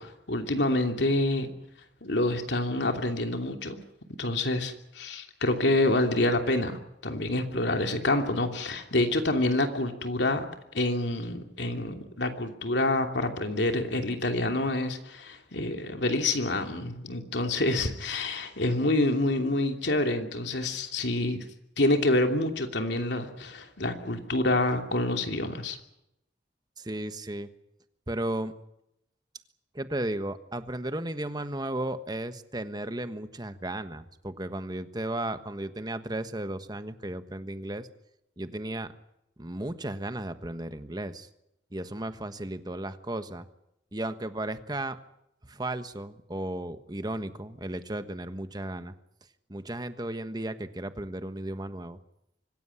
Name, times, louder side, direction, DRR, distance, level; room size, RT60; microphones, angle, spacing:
voice 1, 0.0-1.5 2.0-3.8 4.2-10.5 10.7-21.4 21.8-25.8, left 2 dB, 75° left, 5 dB, 2.9 m, -27 dB
voice 2, 26.8-27.5 28.1-28.5 29.7-37.9 38.4-38.9 39.4-41.3 41.7-43.5 43.9-45.0 45.5-48.9 49.5-52.0, right 1 dB, 20° right, 10 dB, 1.3 m, -34 dB
25.5 x 16.0 x 9.8 m, 0.83 s
head